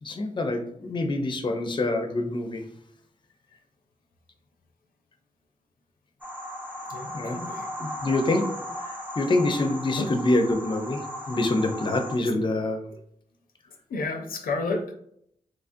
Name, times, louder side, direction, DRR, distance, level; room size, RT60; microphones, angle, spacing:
voice 1, 0.0-2.6 7.1-7.4 7.8-8.5 8.8-12.8, left 2 dB, 35° left, 5 dB, 0.5 m, -26 dB
sound 1, 6.2-12.2, left 1 dB, 10° right, 0.6 m, -36 dB
voice 2, 6.9-7.7 9.9-10.1 13.7-14.9, left 3 dB, 80° left, 3 dB, 0.5 m, -31 dB
3.2 x 2.3 x 2.5 m, 0.69 s
cardioid pair, 55°, 15 cm